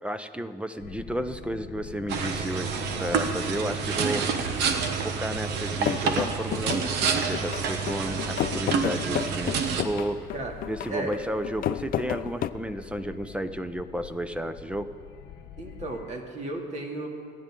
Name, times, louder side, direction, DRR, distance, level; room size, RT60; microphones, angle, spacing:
voice 1, 0.0-4.3 5.0-10.3 10.7-14.9, right 1 dB, 5° right, 11 dB, 0.7 m, -32 dB
sound 1, 0.8-16.1, left 9 dB, 85° left, 0.9 m, -45 dB
sound 2, 2.1-9.8, right 6 dB, 85° right, 1.3 m, -28 dB
sound 3, 5.8-12.5, left 12 dB, 55° left, 0.5 m, -31 dB
voice 2, 15.6-17.1, right 2 dB, 40° right, 1 dB, 2.6 m, -34 dB
27.5 x 10.5 x 3.8 m, 2.4 s
cardioid pair, 110°, 17 cm